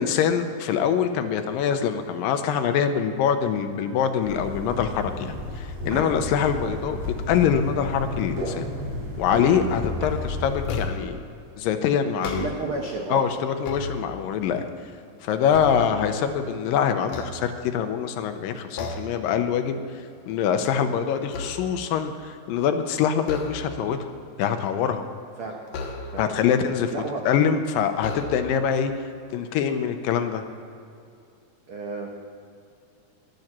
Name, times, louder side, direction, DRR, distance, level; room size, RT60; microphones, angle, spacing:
voice 1, 0.0-7.0 7.3-8.7 9.2-11.2 11.6-12.5 13.1-14.7 15.2-19.8 20.3-24.0 24.4-25.0 26.2-26.9 27.3-28.9 29.3-30.4, left 8 dB, 80° left, 8 dB, 2.3 m, -24 dB
sound 1, 4.2-10.8, left 1 dB, 40° right, 4.7 m, -32 dB
sound 2, 10.6-11.2 12.1-12.9 13.4-14.5 15.0-16.5 17.0-18.0 18.8-19.3 19.6-19.9 20.3-22.0 23.2-24.0 25.7-26.5 27.2-27.3 28.0-28.7, left 3 dB, 60° left, 2.1 m, -35 dB
voice 2, 12.2-13.2 25.4-25.6 26.1-26.3 26.9-27.3 31.7-32.1, right 3 dB, 85° right, 0 dB, 1.1 m, -32 dB
11.5 x 9.3 x 7.3 m, 2.4 s
omnidirectional pair, 4.1 m